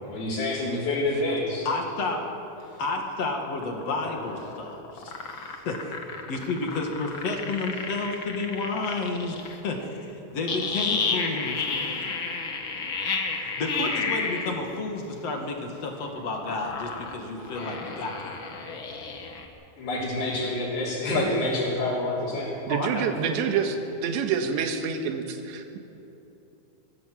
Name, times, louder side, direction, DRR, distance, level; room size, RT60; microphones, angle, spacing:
voice 1, 0.0-1.7 19.8-22.5, left 2 dB, 60° left, -8 dB, 5.6 m, -27 dB
voice 2, 1.6-2.2 2.8-6.0 6.3-12.1 13.6-18.4 22.7-23.4, left 3 dB, 45° left, 2 dB, 2.4 m, -31 dB
sound 1, 3.4-9.5 10.5-14.5 16.4-19.4, left 4 dB, 80° left, 1.1 m, -31 dB
voice 3, 22.7-25.8, right 6 dB, 75° right, 5 dB, 3.6 m, -27 dB
25.0 x 15.0 x 7.8 m, 2.8 s
omnidirectional pair, 5.2 m